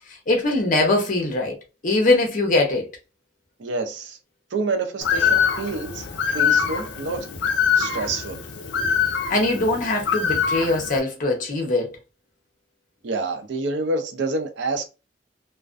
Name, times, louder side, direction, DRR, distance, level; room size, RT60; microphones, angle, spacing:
voice 1, 0.3-1.6 1.8-2.9 9.3-12.0, left 2 dB, 45° left, 0.7 m, -21 dB
voice 2, 3.6-4.2 4.5-6.1 6.3-7.3 7.8-8.4 13.0-14.9, right 3 dB, 75° right, 0.5 m, -27 dB
Bird, 5.0-11.0, left 7 dB, 80° left, 0.5 m, -24 dB
2.3 x 2.1 x 2.4 m
head